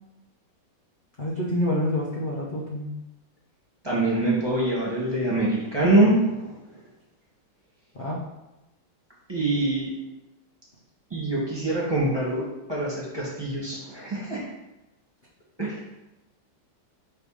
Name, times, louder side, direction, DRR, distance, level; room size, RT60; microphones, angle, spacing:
voice 1, 1.2-2.9 7.9-8.2, left 1 dB, 45° left, -5 dB, 0.6 m, -27 dB
voice 2, 3.8-6.8 9.3-9.9 11.1-12.4 12.7-14.4 15.6-15.8, right 2 dB, 15° right, -7 dB, 1.6 m, -24 dB
5.9 x 3.3 x 5.0 m, 0.97 s
omnidirectional pair, 2.2 m